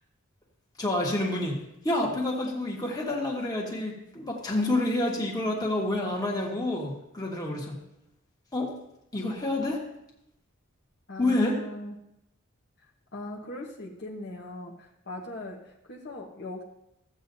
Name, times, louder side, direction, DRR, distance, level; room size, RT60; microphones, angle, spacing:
voice 1, 0.8-7.8 8.5-8.7 9.1-9.8 11.2-11.6, left 2 dB, 20° left, -2 dB, 1.6 m, -28 dB
voice 2, 11.1-11.9 13.1-16.6, left 1 dB, 50° left, -2 dB, 1.2 m, -39 dB
14.5 x 8.1 x 2.7 m, 0.80 s
head